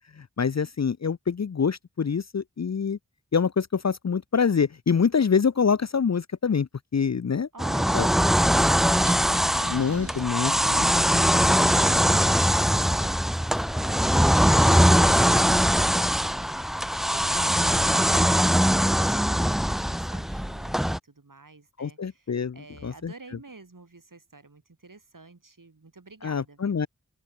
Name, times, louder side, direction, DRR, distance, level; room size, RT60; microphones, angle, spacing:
voice 1, 0.0-3.0 3.3-7.5 7.9-8.1 9.6-10.9 21.8-23.1 26.2-26.9, left 6 dB, 55° left, 0.7 m, -26 dB
voice 2, 7.5-9.7 10.0-26.9, right 3 dB, 70° right, 7.9 m, -48 dB
sound 1, 7.6-21.0, equal, ahead, 0.4 m, -22 dB
sound 2, 8.9-10.6 11.2-13.2 14.0-15.9 17.1-18.7, right 3 dB, 45° right, 1.8 m, -42 dB
wide cardioid pair, 45°, 33 cm